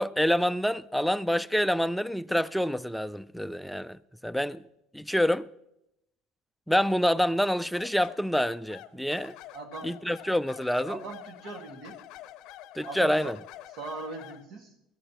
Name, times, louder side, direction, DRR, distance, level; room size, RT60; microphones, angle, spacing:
voice 1, 0.0-4.6 4.9-5.5 6.7-9.3 9.8-11.0 12.8-13.4, equal, ahead, 0.4 m, -27 dB
sound 1, 7.7-14.5, left 13 dB, 65° left, 0.6 m, -47 dB
voice 2, 9.5-9.9 10.9-12.0 12.8-13.3 13.7-14.7, right 3 dB, 60° right, 2.0 m, -39 dB
21.0 x 14.0 x 3.0 m
supercardioid pair, 110°, 0 cm